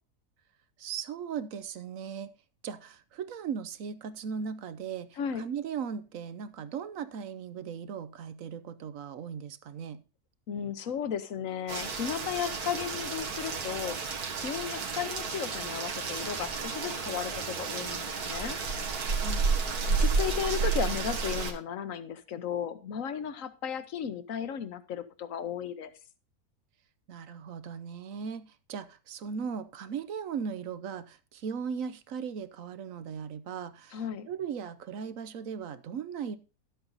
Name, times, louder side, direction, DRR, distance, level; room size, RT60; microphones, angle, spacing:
voice 1, 0.8-2.3 2.6-10.0 19.0-19.5 27.1-36.4, right 7 dB, 65° right, 1.1 m, -38 dB
voice 2, 10.5-14.0 14.3-18.6 19.9-25.9 33.9-34.3, left 8 dB, 65° left, 1.3 m, -35 dB
Rain, 11.7-21.5, right 5 dB, 90° right, 2.0 m, -31 dB
12.0 x 8.0 x 4.0 m
omnidirectional pair, 1.6 m